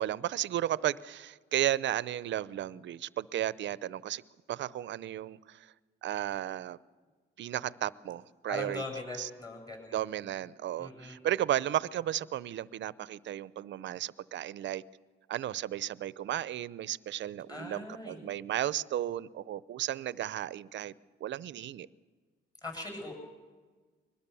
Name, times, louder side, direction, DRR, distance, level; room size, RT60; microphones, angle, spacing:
voice 1, 0.0-4.2 4.5-5.7 6.0-6.8 7.4-8.8 9.2-9.3 9.9-14.8 15.3-20.9 21.2-21.9, right 12 dB, 65° right, 19 dB, 0.7 m, -34 dB
voice 2, 8.5-10.0 10.8-11.2 17.5-18.2 22.6-23.1, left 2 dB, 20° left, 3 dB, 7.4 m, -40 dB
23.0 x 20.0 x 7.0 m, 1.4 s
cardioid pair, 90°, 20 cm